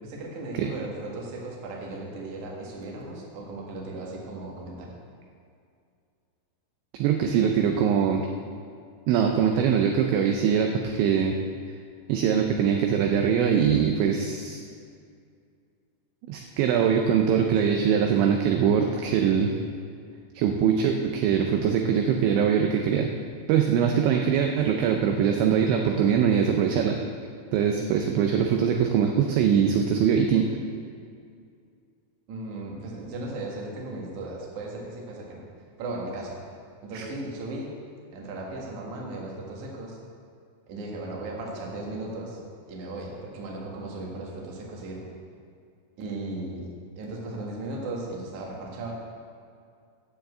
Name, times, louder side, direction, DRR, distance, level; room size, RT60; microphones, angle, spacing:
voice 1, 0.0-5.0 32.3-35.4 35.8-36.3 36.8-37.7 38.1-40.0 40.7-42.4 42.7-45.0 46.0-46.7 47.0-48.9, right 2 dB, 60° right, -2 dB, 2.0 m, -36 dB
voice 2, 6.9-8.3 9.1-11.3 12.1-14.6 16.3-19.6 20.4-23.1 23.5-27.0 27.5-30.5 36.9-37.1, right 7 dB, 85° right, 3 dB, 2.6 m, -22 dB
9.3 x 7.2 x 7.8 m, 2.3 s
omnidirectional pair, 6.0 m